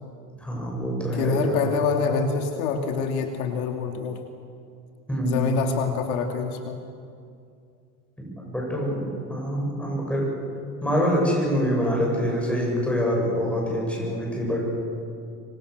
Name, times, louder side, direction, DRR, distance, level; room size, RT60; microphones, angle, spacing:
voice 1, 0.4-1.5 5.1-5.5 8.2-10.3 10.8-14.6, equal, 5° left, -3 dB, 7.7 m, -25 dB
voice 2, 1.1-4.2 5.2-6.8, left 5 dB, 70° left, 4 dB, 2.7 m, -26 dB
25.5 x 25.0 x 6.7 m, 2.4 s
supercardioid pair, 150°, 44 cm